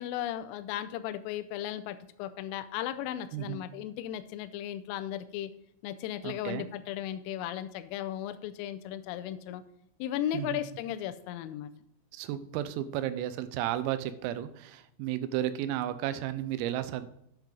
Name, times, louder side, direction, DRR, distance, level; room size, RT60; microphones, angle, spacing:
voice 1, 0.0-5.5 5.8-9.6 10.0-11.7, left 11 dB, 85° left, 11 dB, 3.1 m, -36 dB
voice 2, 6.2-6.7 10.3-10.6 12.1-17.1, right 12 dB, 90° right, 12 dB, 3.4 m, -33 dB
9.2 x 7.2 x 3.8 m, 0.75 s
omnidirectional pair, 5.8 m